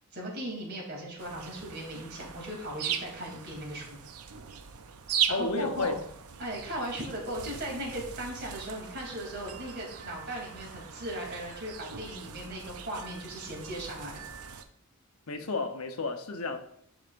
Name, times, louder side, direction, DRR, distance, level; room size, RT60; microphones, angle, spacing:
voice 1, 0.1-4.0 5.3-6.0 6.4-14.3, right 1 dB, 50° right, 3.0 m, -38 dB
sound 1, 1.2-14.6, right 8 dB, 80° right, 0.6 m, -39 dB
voice 2, 5.3-5.9 15.3-16.6, left 3 dB, 75° left, 0.9 m, -31 dB
11.0 x 5.1 x 2.6 m
head